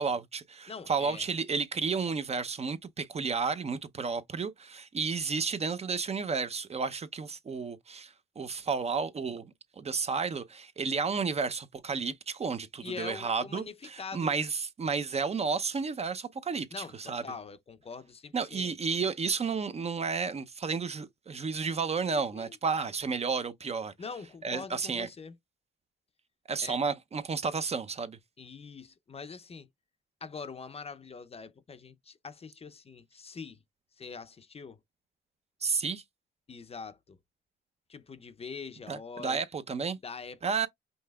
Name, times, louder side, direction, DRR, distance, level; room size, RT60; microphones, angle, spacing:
voice 1, 0.0-9.5 9.8-17.2 18.3-23.9 24.4-25.1 26.5-28.2 35.6-36.0 38.9-40.0 40.4-40.7, right 5 dB, 30° right, 0.6 m, -32 dB
voice 2, 0.7-1.3 12.8-14.4 16.7-18.8 22.1-22.6 24.0-25.4 26.6-26.8 28.4-29.7 30.2-33.6 34.0-34.8 36.5-37.2 37.9-39.4 40.0-40.4, left 5 dB, 30° left, 0.5 m, -43 dB
5.4 x 3.2 x 2.2 m
cardioid pair, 90°, 20 cm